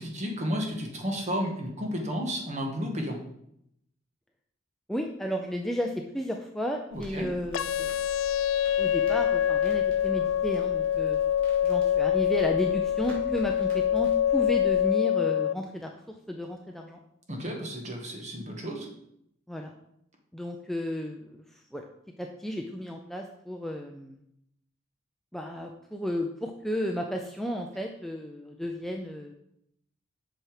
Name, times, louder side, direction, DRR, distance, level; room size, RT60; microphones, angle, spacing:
voice 1, 0.0-3.2 6.9-7.3 17.3-18.9, equal, 35° right, 1 dB, 1.5 m, -32 dB
voice 2, 4.9-7.9 8.8-11.2 11.6-15.9 16.3-17.0 19.5-19.7 20.3-21.4 21.7-21.8 22.2-24.2 25.3-29.3, equal, ahead, 1 dB, 0.5 m, -33 dB
Crackle, 6.9-14.8, equal, 90° right, 3.2 m, -47 dB
sound 1, 7.5-15.5, left 10 dB, 75° left, 0.3 m, -25 dB
7.9 x 5.8 x 4.9 m, 0.76 s
head